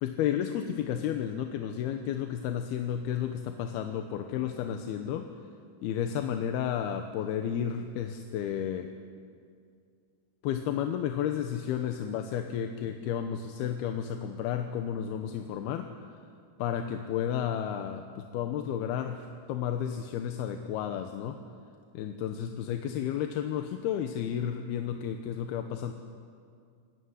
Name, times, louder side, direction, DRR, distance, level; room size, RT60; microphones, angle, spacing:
voice 1, 0.0-5.3 5.8-8.9 10.4-15.9 16.6-21.4 21.9-25.9, left 9 dB, 75° left, 6 dB, 2.8 m, -32 dB
28.5 x 18.0 x 9.7 m, 2.2 s
omnidirectional pair, 4.9 m